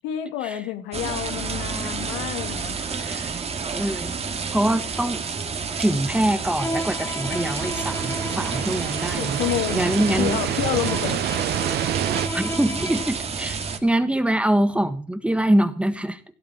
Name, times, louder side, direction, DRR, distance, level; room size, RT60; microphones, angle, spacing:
voice 1, 0.0-2.8 9.2-11.2, left 12 dB, 85° left, 8 dB, 2.1 m, -29 dB
sound 1, 0.9-13.8, right 5 dB, 30° right, 2.2 m, -30 dB
voice 2, 2.9-3.4 3.7-4.2 4.5-5.2 5.8-9.4 9.7-10.4 12.3-16.2, right 1 dB, 5° right, 11 dB, 1.4 m, -24 dB
Bowed string instrument, 6.6-13.2, left 1 dB, 15° left, 2.2 m, -34 dB
sound 2, 7.3-12.3, right 13 dB, 55° right, 0.6 m, -28 dB
17.0 x 7.9 x 7.4 m, 0.41 s
supercardioid pair, 95°, 19 cm